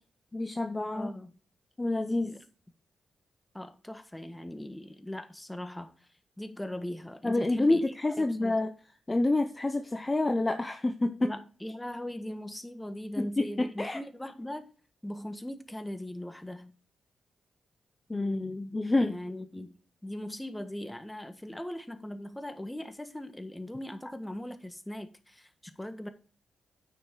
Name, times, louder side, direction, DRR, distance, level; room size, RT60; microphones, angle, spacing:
voice 1, 0.3-1.1 1.8-2.3 7.2-8.7 9.1-11.3 13.2-14.0 18.1-19.2, left 2 dB, 25° left, 0.9 m, -28 dB
voice 2, 0.9-1.3 2.2-2.4 3.5-5.9 6.4-7.8 8.4-8.6 11.2-14.7 15.0-16.7 19.0-19.7 20.0-26.1, left 1 dB, 10° left, 1.6 m, -39 dB
9.3 x 6.3 x 4.8 m
cardioid pair, 60°, 0 cm